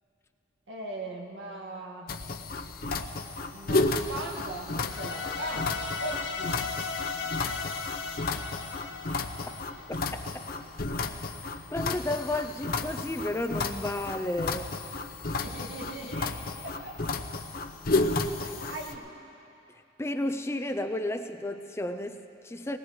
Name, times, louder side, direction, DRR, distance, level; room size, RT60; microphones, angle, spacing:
voice 1, 0.7-2.1 3.5-6.6 9.3-9.4 15.4-16.4 16.6-17.0 18.4-19.1, right 2 dB, 90° right, -1 dB, 1.9 m, -39 dB
sound 1, 2.1-18.9, left 3 dB, 55° left, 0.7 m, -32 dB
sound 2, 4.9-10.1, left 5 dB, 85° left, 1.5 m, -36 dB
voice 2, 11.7-14.7 18.4-18.5 20.0-22.8, left 1 dB, 15° left, 7 dB, 0.4 m, -32 dB
20.0 x 19.0 x 3.2 m, 2.7 s
head